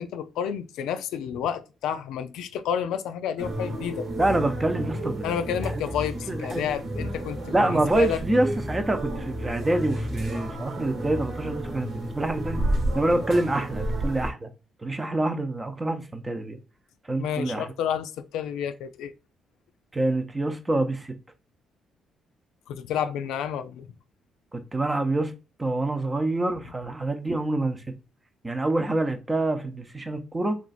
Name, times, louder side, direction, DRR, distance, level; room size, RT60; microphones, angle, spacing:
voice 1, 0.0-4.1 5.2-8.2 17.2-19.1 22.7-23.9, left 8 dB, 90° left, 0.3 m, -30 dB
sound 1, 3.4-14.3, right 1 dB, 60° right, 1.1 m, -31 dB
voice 2, 4.2-5.9 6.3-6.7 7.5-12.6 12.9-14.5 14.8-16.6 17.1-17.7 19.9-21.1 24.5-25.3 25.6-27.8 28.4-30.6, right 2 dB, 20° right, 0.7 m, -26 dB
3.0 x 2.4 x 4.0 m
cardioid pair, 90°, 0 cm